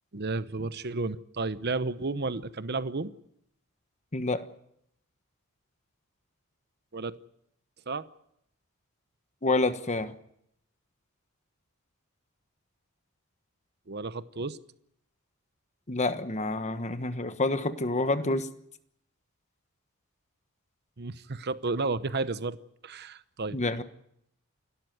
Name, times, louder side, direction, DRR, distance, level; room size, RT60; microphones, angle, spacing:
voice 1, 0.1-3.1 6.9-7.2 7.9-8.1 13.9-14.6 21.0-22.6 22.8-23.6, right 3 dB, 50° right, 14 dB, 0.9 m, -32 dB
voice 2, 4.1-4.4 9.4-10.1 15.9-18.5 23.5-23.8, left 2 dB, 30° left, 11 dB, 1.2 m, -28 dB
28.5 x 13.0 x 9.3 m, 0.76 s
head